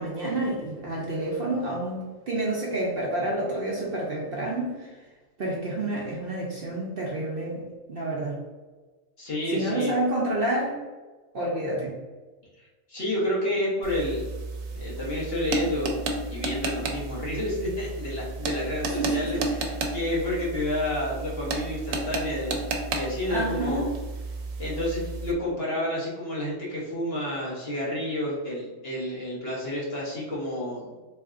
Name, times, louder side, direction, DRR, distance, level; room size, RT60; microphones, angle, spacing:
voice 1, 0.0-5.0 5.4-7.6 7.9-8.4 9.5-10.8 11.3-12.0 19.0-19.6 20.2-20.3 23.3-23.9, right 1 dB, 55° right, -3 dB, 0.8 m, -29 dB
voice 2, 9.2-9.9 12.6-14.3 14.7-15.9 16.3-22.6 22.9-23.9 24.6-31.0, left 1 dB, 50° left, -6 dB, 1.3 m, -30 dB
sound 1, 13.8-25.3, right 3 dB, 80° right, 1.0 m, -33 dB
3.6 x 3.2 x 2.4 m, 1.3 s
omnidirectional pair, 1.4 m